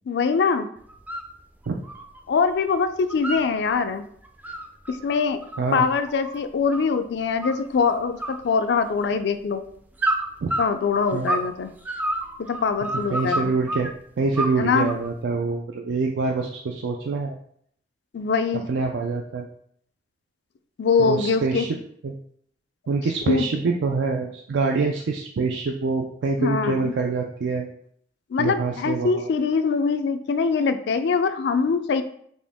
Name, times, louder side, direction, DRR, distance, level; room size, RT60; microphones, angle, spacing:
voice 1, 0.1-0.7 2.3-4.1 4.9-5.4 5.7-9.6 10.6-11.8 12.5-13.5 14.6-14.9 18.1-18.7 20.8-21.7 23.3-23.5 26.4-26.9 28.3-32.0, left 5 dB, 65° left, 10 dB, 0.4 m, -23 dB
sound 1, 0.9-1.3 1.6-2.6 2.9-3.8 4.2-7.0 7.4-7.9 8.2-9.2 10.0-11.5 11.8-13.9 14.4-15.1, right 1 dB, 10° right, 0.3 m, -29 dB
voice 2, 13.1-13.9 14.2-17.4 18.7-19.5 21.0-21.8 22.0-22.1 22.9-27.7 28.4-29.3, right 4 dB, 80° right, 1 dB, 0.4 m, -25 dB
4.2 x 2.9 x 3.5 m, 0.65 s
head